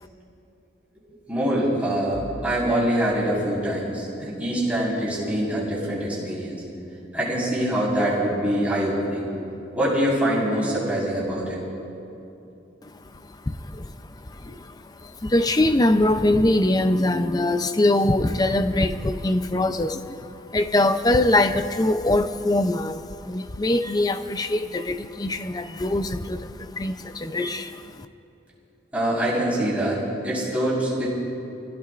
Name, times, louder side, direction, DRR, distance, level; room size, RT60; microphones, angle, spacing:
voice 1, 1.3-6.6 7.1-9.3 9.7-11.6 28.9-31.1, right 1 dB, 10° right, -8 dB, 4.3 m, -24 dB
voice 2, 13.3-13.9 14.2-28.1, left 1 dB, 20° left, 9 dB, 0.5 m, -23 dB
26.0 x 16.0 x 2.5 m, 2.9 s
head